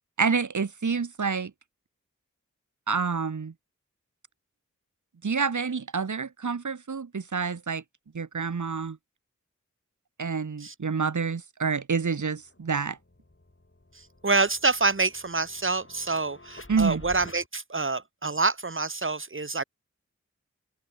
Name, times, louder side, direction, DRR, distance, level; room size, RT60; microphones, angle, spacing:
voice 1, 0.2-1.5 2.9-3.5 5.2-7.8 8.1-9.0 10.2-13.0 16.7-17.0, right 5 dB, 85° right, 1.0 m, -28 dB
sound 1, 12.0-12.1 12.5-17.5, left 2 dB, 45° left, 7.4 m, -49 dB
voice 2, 13.9-19.6, right 3 dB, 45° right, 1.4 m, -27 dB
open air
wide cardioid pair, 45°, 29 cm